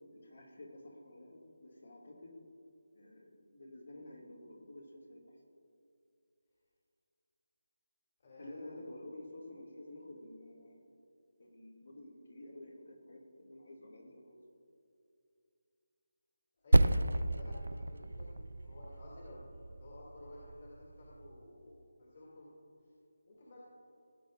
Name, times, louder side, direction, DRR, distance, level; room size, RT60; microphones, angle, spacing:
voice 1, 0.0-2.4 2.9-5.3 8.4-10.9 11.4-14.4, left 1 dB, 70° left, -2 dB, 2.1 m, -51 dB
voice 2, 8.2-8.8 16.6-22.5 23.3-23.6, left 1 dB, 50° left, -6 dB, 2.2 m, -54 dB
Percussion, 16.7-21.6, right 1 dB, 80° right, 0.4 m, -32 dB
16.5 x 8.3 x 2.5 m, 2.5 s
figure-of-eight pair, 165°, 0 cm